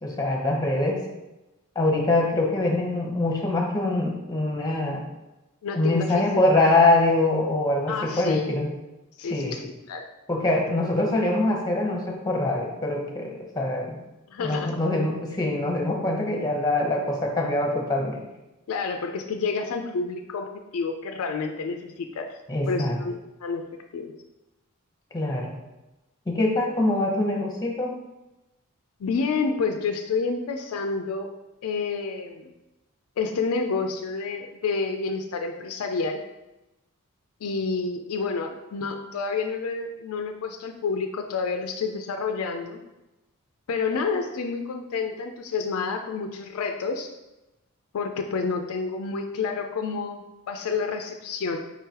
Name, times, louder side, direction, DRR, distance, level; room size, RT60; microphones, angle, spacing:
voice 1, 0.0-1.0 1.7-5.0 5.7-8.7 9.3-9.6 10.3-14.0 14.4-18.2 22.5-23.0 25.1-25.6 26.3-27.9, left 2 dB, 20° left, 0 dB, 0.8 m, -24 dB
voice 2, 5.6-6.2 7.9-8.6 9.2-10.1 14.3-14.8 18.7-22.4 22.7-23.7 23.9-24.1 29.0-31.3 31.6-32.5 33.2-36.2 37.4-42.8 43.7-47.1 47.9-51.6, left 4 dB, 75° left, 5 dB, 0.4 m, -29 dB
4.8 x 3.7 x 2.8 m, 1.0 s
head